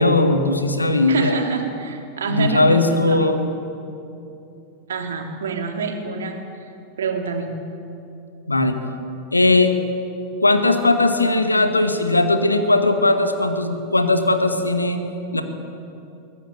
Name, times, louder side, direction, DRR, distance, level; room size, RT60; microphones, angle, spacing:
voice 1, 0.0-1.4 2.3-3.4 8.5-8.8 9.3-9.7 10.4-15.0 15.3-15.4, left 2 dB, 85° left, 7 dB, 1.9 m, -18 dB
voice 2, 1.1-3.3 4.9-6.4 7.0-7.5, right 4 dB, 65° right, 3 dB, 3.1 m, -26 dB
22.5 x 18.5 x 9.1 m, 2.7 s
figure-of-eight pair, 90°, 0 cm